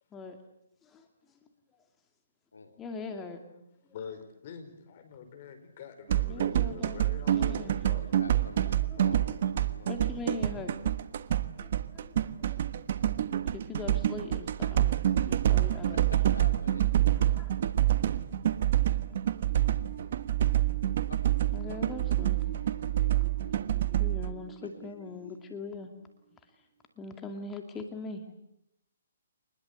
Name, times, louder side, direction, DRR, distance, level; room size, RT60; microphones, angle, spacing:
voice 1, 2.8-3.4 6.3-7.0 7.3-8.1 8.6-9.2 9.9-10.8 11.6-12.6 12.9-13.1 13.5-16.1 17.1-17.5 17.8-18.0 18.6-18.7 19.0-19.1 21.5-22.4 24.0-25.9 26.6-26.7 27.0-28.2, left 3 dB, 15° left, 5 dB, 2.4 m, -42 dB
voice 2, 3.5-8.1, left 6 dB, 45° left, 9 dB, 4.9 m, -45 dB
sound 1, 6.1-24.3, right 12 dB, 55° right, 1.3 m, -27 dB
voice 3, 8.0-9.9 16.1-16.8 21.1-21.2 25.2-25.3, left 3 dB, 90° left, 7 dB, 3.7 m, -46 dB
sound 2, 19.5-26.4, right 7 dB, 35° right, 5.4 m, -46 dB
25.5 x 20.5 x 8.1 m, 0.79 s
hypercardioid pair, 145°, 0 cm